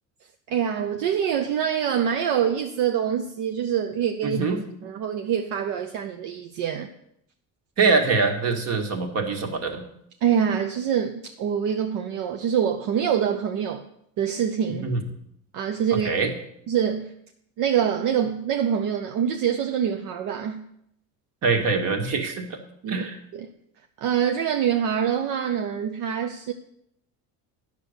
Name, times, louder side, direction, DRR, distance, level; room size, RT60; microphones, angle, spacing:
voice 1, 0.5-4.4 4.8-6.9 10.2-13.8 14.2-14.9 15.5-16.1 16.7-17.1 17.6-20.6 22.8-23.1 23.3-23.5 24.0-26.5, right 8 dB, 70° right, 5 dB, 0.8 m, -25 dB
voice 2, 4.2-4.6 7.8-9.9 14.8-15.0 15.9-16.3 21.4-22.6 22.9-23.2, right 4 dB, 50° right, 4 dB, 1.8 m, -24 dB
9.8 x 6.7 x 6.6 m, 0.73 s
cardioid pair, 135°, 33 cm